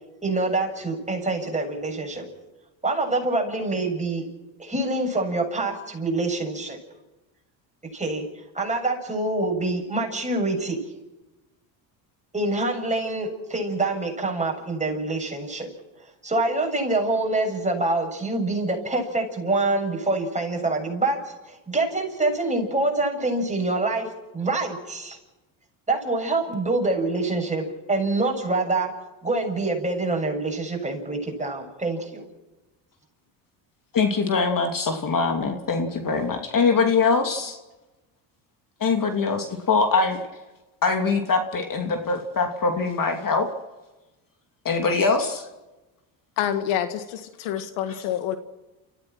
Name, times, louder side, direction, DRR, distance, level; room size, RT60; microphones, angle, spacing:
voice 1, 0.2-2.3 2.8-4.3 4.6-6.8 7.9-8.3 8.5-10.8 12.3-15.7 16.2-21.2 21.5-24.1 24.3-25.2 25.9-28.9 29.2-32.2, right 2 dB, 15° right, 1 dB, 7.5 m, -25 dB
voice 2, 33.9-37.6 38.8-40.2 40.8-43.5 44.6-45.4, left 4 dB, 40° left, 5 dB, 2.8 m, -23 dB
voice 3, 46.4-48.4, left 10 dB, 80° left, 9 dB, 1.9 m, -27 dB
29.5 x 15.5 x 6.2 m, 1.1 s
supercardioid pair, 80°, 50 cm